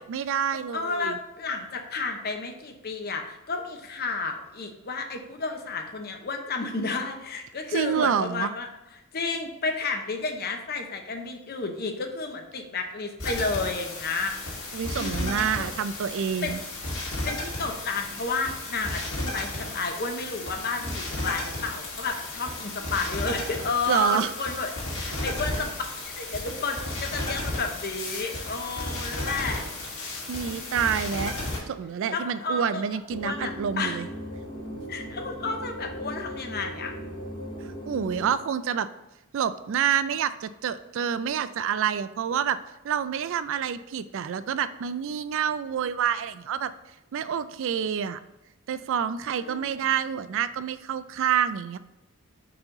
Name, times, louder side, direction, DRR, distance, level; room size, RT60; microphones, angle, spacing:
voice 1, 0.0-1.2 7.7-8.5 14.7-16.6 23.9-24.3 30.3-31.3 31.7-34.1 37.9-38.9 39.3-42.6 42.8-46.7 47.1-48.2 48.7-51.8, right 8 dB, 60° right, 13 dB, 0.3 m, -27 dB
voice 2, 0.7-8.7 9.1-14.3 14.9-15.7 16.4-16.5 17.2-25.7 26.0-29.7 30.3-31.1 32.1-34.0 34.9-36.9 49.4-49.8, left 3 dB, 45° left, 4 dB, 0.8 m, -32 dB
sound 1, 13.2-31.6, left 2 dB, 60° left, 2.1 m, -34 dB
sound 2, 33.1-38.3, equal, 25° left, 1.1 m, -38 dB
5.5 x 4.8 x 3.8 m, 0.93 s
head